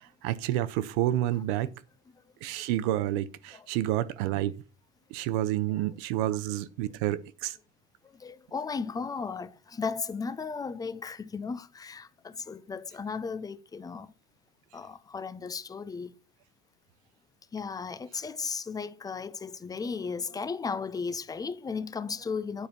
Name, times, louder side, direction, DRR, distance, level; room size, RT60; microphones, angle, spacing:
voice 1, 0.0-1.7 2.4-4.5 5.1-7.6, right 13 dB, 70° right, 1.0 m, -29 dB
voice 2, 8.1-14.1 14.7-16.1 17.5-22.7, left 5 dB, 10° left, 0.4 m, -35 dB
9.8 x 4.4 x 6.7 m
supercardioid pair, 135°, 36 cm